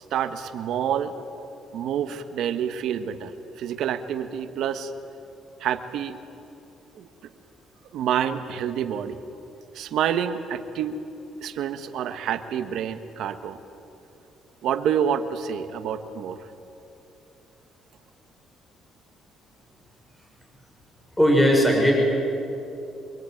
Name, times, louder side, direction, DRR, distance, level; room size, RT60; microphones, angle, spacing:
voice 1, 0.1-1.2 1.7-3.3 3.6-4.9 5.6-6.2 6.9-7.1 7.9-9.2 9.7-11.0 11.4-13.6 14.6-16.5, right 9 dB, 75° right, 9 dB, 1.5 m, -28 dB
voice 2, 21.2-21.9, equal, 5° left, 0 dB, 6.4 m, -17 dB
26.0 x 23.0 x 9.3 m, 2.8 s
cardioid pair, 115°, 0 cm